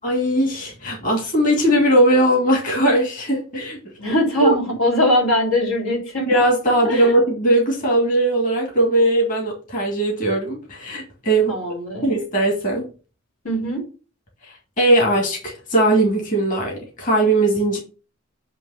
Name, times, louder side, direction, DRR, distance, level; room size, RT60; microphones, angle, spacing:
voice 1, 0.0-3.8 4.4-4.5 6.3-11.5 12.0-12.9 14.8-17.8, right 1 dB, 40° left, 2.4 m, -19 dB
voice 2, 4.0-6.3 6.9-7.1 11.5-12.1 13.4-13.8, left 1 dB, 80° left, 3.4 m, -21 dB
9.2 x 3.1 x 5.7 m
head